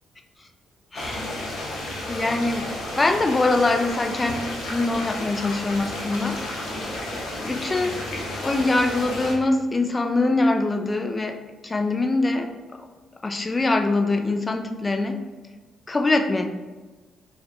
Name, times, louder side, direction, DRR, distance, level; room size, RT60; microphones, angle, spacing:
sound 1, 0.9-9.3, left 1 dB, 60° left, 0.7 m, -32 dB
voice 1, 0.9-1.4 2.1-2.7 3.0-6.4 7.4-8.0 8.4-11.4 11.6-12.5 13.2-15.2 15.9-16.5, left 2 dB, 25° left, 5 dB, 0.4 m, -23 dB
5.6 x 2.3 x 2.6 m, 1.3 s
figure-of-eight pair, 40°, 0 cm